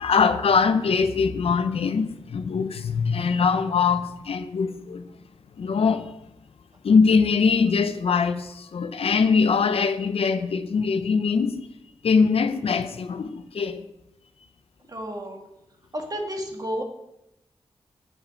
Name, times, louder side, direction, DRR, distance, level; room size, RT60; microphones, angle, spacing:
voice 1, 0.0-5.1 5.6-6.1 6.8-11.7 12.0-13.9, left 5 dB, 75° left, 0.6 m, -22 dB
voice 2, 14.9-15.4 15.9-16.8, equal, 40° right, 1.8 m, -31 dB
8.4 x 5.6 x 5.0 m
cardioid pair, 50°, 10 cm